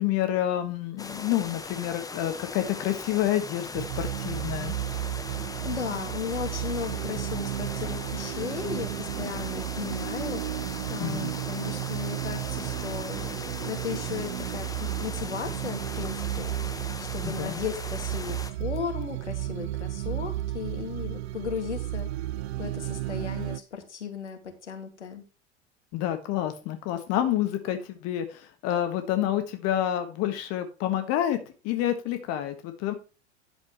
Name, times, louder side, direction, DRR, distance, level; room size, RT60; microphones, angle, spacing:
voice 1, 0.0-4.7 11.0-11.3 17.2-17.6 25.9-31.4 31.6-32.9, left 12 dB, 45° left, 1.6 m, -28 dB
sound 1, 1.0-18.5, left 3 dB, 10° left, 1.2 m, -39 dB
sound 2, 3.7-23.6, right 15 dB, 70° right, 0.5 m, -33 dB
voice 2, 5.3-22.1 22.6-25.2, left 7 dB, 80° left, 2.2 m, -36 dB
11.0 x 7.1 x 3.1 m
figure-of-eight pair, 85°, 34 cm